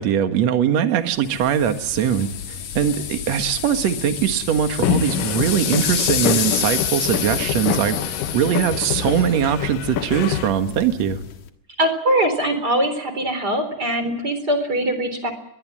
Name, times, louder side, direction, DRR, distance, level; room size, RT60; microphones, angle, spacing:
voice 1, 0.0-11.2, right 9 dB, 65° right, 7 dB, 1.6 m, -21 dB
sound 1, 1.2-11.5, left 8 dB, 60° left, 2.1 m, -29 dB
sound 2, 4.8-10.5, left 11 dB, 80° left, 1.9 m, -26 dB
voice 2, 11.8-15.3, right 1 dB, 25° right, 8 dB, 3.7 m, -22 dB
22.5 x 22.0 x 7.6 m, 0.83 s
omnidirectional pair, 5.4 m